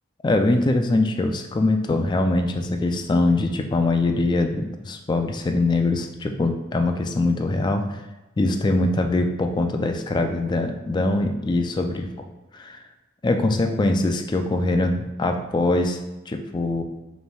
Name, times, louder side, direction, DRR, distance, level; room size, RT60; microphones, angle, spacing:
voice 1, 0.2-8.0 8.4-12.1 12.5-12.8 13.2-16.0 16.3-16.8, left 2 dB, 20° left, 5 dB, 0.3 m, -22 dB
5.2 x 3.3 x 2.3 m, 1.0 s
head